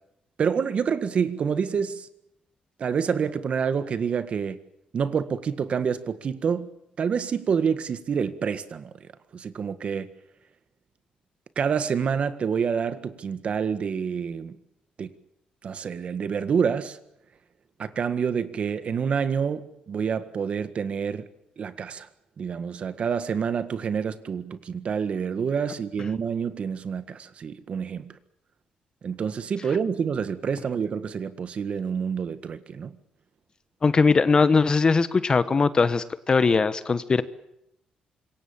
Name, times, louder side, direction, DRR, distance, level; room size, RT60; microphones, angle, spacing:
voice 1, 0.4-2.1 2.8-4.6 4.9-6.7 7.0-8.9 9.3-10.1 11.6-14.6 15.0-15.1 15.6-17.0 17.8-21.3 21.6-22.1 22.4-28.1 29.0-33.0, right 6 dB, 50° right, 1.7 m, -27 dB
voice 2, 33.8-37.2, left 4 dB, 30° left, 1.3 m, -20 dB
26.0 x 23.0 x 7.3 m
cardioid pair, 125°, 3 cm